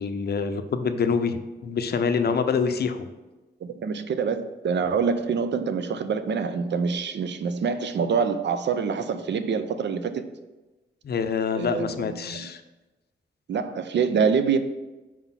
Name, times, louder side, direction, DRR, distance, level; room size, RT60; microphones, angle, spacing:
voice 1, 0.0-3.1 11.0-12.6, left 5 dB, 60° left, 9 dB, 0.5 m, -26 dB
voice 2, 3.6-10.2 11.5-12.5 13.5-14.6, right 6 dB, 70° right, 10 dB, 0.5 m, -26 dB
4.6 x 3.9 x 5.6 m, 1.1 s
wide cardioid pair, 140°, 19 cm